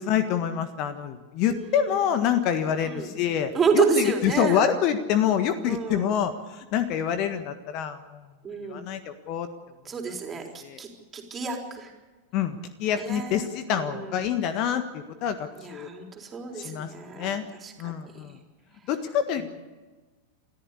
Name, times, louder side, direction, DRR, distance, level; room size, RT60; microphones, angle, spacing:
voice 1, 0.0-8.3 8.6-9.5 10.6-10.8 12.3-15.9 16.5-16.9 17.1-17.4 17.8-18.4 18.9-19.4, left 9 dB, 40° left, 10 dB, 1.5 m, -26 dB
voice 2, 1.5-2.0 2.8-3.1 3.5-4.7 5.7-6.1 8.4-8.8 9.9-11.9 13.0-14.2 15.6-18.3 19.3-19.4, right 5 dB, 20° right, 2 dB, 4.0 m, -30 dB
28.0 x 14.0 x 8.4 m, 1.3 s
figure-of-eight pair, 90°, 0 cm